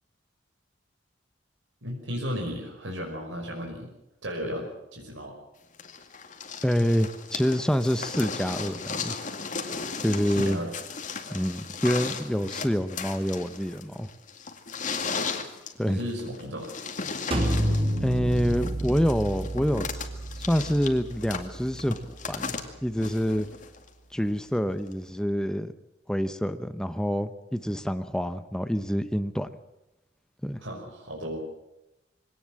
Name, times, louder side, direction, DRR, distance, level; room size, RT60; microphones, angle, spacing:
voice 1, 1.8-3.9 4.2-5.3 10.3-10.7 15.8-16.7 30.6-31.5, equal, 85° right, 0 dB, 5.6 m, -34 dB
sound 1, 5.8-23.9 24.9-25.0, left 5 dB, 40° left, 2.2 m, -36 dB
voice 2, 6.6-9.1 10.0-10.6 11.3-14.1 15.8-16.0 18.0-20.1 20.4-22.0 22.3-22.5 22.8-23.5 24.1-25.7 26.1-29.5 30.4-30.6, equal, 5° left, 10 dB, 0.8 m, -27 dB
sound 2, 17.3-22.9, right 1 dB, 30° right, 4.0 m, -31 dB
22.5 x 18.0 x 7.6 m, 0.91 s
head